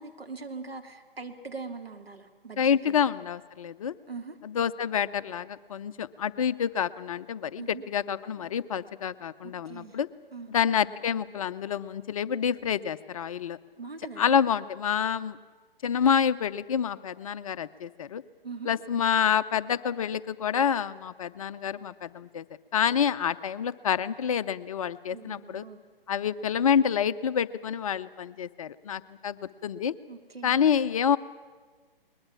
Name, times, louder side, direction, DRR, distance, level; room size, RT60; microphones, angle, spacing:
voice 1, 0.0-2.9 4.1-4.4 7.6-7.8 9.4-10.0 10.3-10.5 13.8-14.4 18.4-18.7 25.1-25.8 30.1-30.6, right 4 dB, 85° right, 4 dB, 2.9 m, -41 dB
voice 2, 2.6-3.9 4.4-10.1 10.5-13.6 14.2-15.4 15.8-18.2 18.6-22.5 22.7-25.6 26.1-29.9 30.4-31.2, left 8 dB, 35° left, 14 dB, 0.6 m, -27 dB
21.0 x 21.0 x 8.6 m, 1.4 s
figure-of-eight pair, 135°, 29 cm